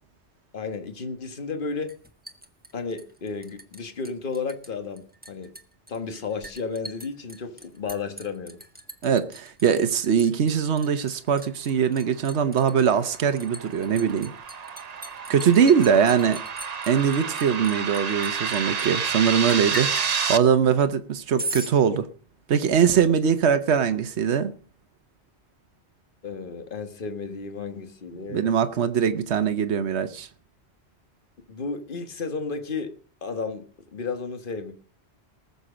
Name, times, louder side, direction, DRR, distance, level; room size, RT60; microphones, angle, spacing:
voice 1, 0.5-1.9 2.7-5.5 5.9-8.6 26.2-28.6 31.5-32.9 33.2-34.7, left 4 dB, 50° left, 1.5 m, -33 dB
Liquid, 1.9-3.8 4.0-4.7 5.0-18.9 19.5-20.1 21.4-21.7, right 1 dB, 10° right, 1.3 m, -39 dB
voice 2, 9.0-14.3 15.3-16.4 16.9-19.9 20.3-22.1 22.5-24.5 28.3-30.3, right 7 dB, 80° right, 1.2 m, -22 dB
sound 1, 12.7-20.4, right 6 dB, 45° right, 0.7 m, -30 dB
20.0 x 7.0 x 5.0 m
omnidirectional pair, 1.1 m